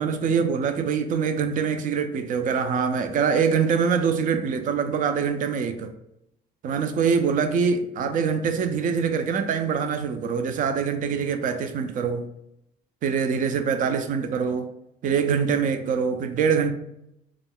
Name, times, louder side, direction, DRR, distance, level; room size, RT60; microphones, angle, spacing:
voice 1, 0.0-5.9 6.6-12.2 13.0-14.7 15.0-16.7, right 6 dB, 50° right, 0.4 m, -24 dB
2.4 x 2.1 x 3.4 m
cardioid pair, 110°, 17 cm